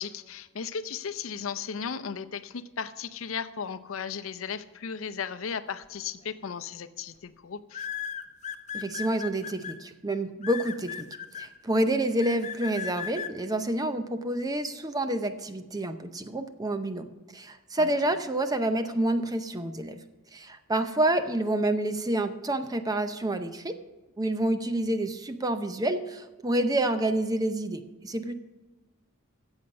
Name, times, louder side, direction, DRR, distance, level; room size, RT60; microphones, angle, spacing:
voice 1, 0.0-7.9 17.8-17.9, left 6 dB, 75° left, 13 dB, 0.6 m, -36 dB
sound 1, 6.2-6.5 7.7-9.7 10.4-11.5 12.2-13.3, left 8 dB, 35° left, 0.7 m, -36 dB
voice 2, 8.7-11.1 11.4-20.0 20.3-23.8 24.2-28.3, right 1 dB, 20° right, 9 dB, 0.6 m, -28 dB
14.0 x 8.1 x 5.3 m, 1.2 s
head